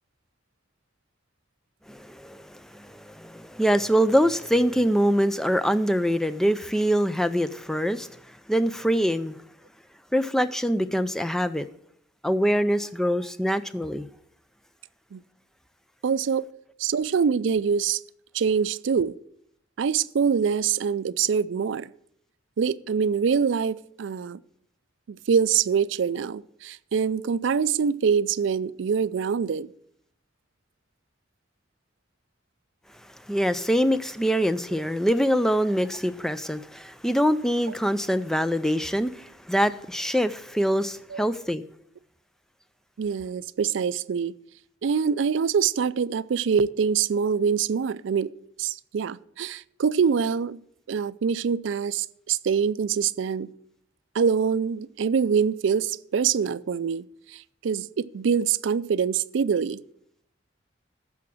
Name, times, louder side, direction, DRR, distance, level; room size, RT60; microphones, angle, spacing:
voice 1, 1.9-9.4 10.1-11.7 12.2-14.1 33.3-41.6, equal, ahead, 0.4 m, -24 dB
voice 2, 16.0-16.5 16.8-18.0 18.3-19.2 19.8-21.9 22.6-24.4 25.1-29.7 41.1-41.3 43.0-44.3 44.8-48.3 48.6-50.6 50.9-53.5 54.1-59.8, right 6 dB, 75° right, 0.4 m, -25 dB
14.5 x 5.8 x 6.1 m
head